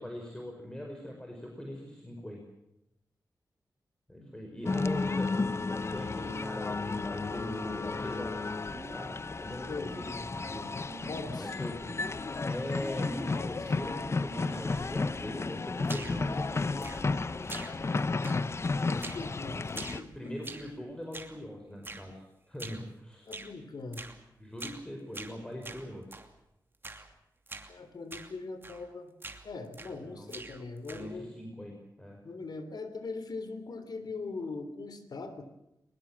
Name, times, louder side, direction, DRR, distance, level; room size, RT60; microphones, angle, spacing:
voice 1, 0.0-2.4 4.1-8.5 8.9-10.7 11.4-12.0 12.4-17.1 20.1-23.3 24.4-26.2 30.0-30.3 30.9-32.2, equal, 10° left, 1 dB, 5.2 m, -41 dB
sound 1, 4.7-20.0, left 3 dB, 40° left, 0.8 m, -33 dB
sound 2, 8.4-9.2 10.8-11.4 13.0-13.6 14.3-14.8 16.2-16.7 16.9-17.2, right 3 dB, 45° right, 7.4 m, -47 dB
voice 2, 11.1-11.5 13.3-13.5 18.8-20.3 23.2-24.1 27.7-29.1 29.4-31.3 32.2-35.4, left 3 dB, 70° left, 10 dB, 3.4 m, -41 dB
sound 3, 15.8-16.3 16.8-17.2 17.5-18.0 18.2-18.6 19.0-19.3 19.7-20.7 21.1-21.4 21.8-22.1 22.6-22.9 23.3-23.5 23.9-24.2 24.6-24.9 25.1-26.3 26.8-27.1 27.5-27.7 28.1-28.3 28.6-28.9 29.2-30.0 30.3-31.2, right 2 dB, 30° right, 2.7 m, -44 dB
22.0 x 21.0 x 7.6 m, 0.87 s
wide cardioid pair, 80°, 7 cm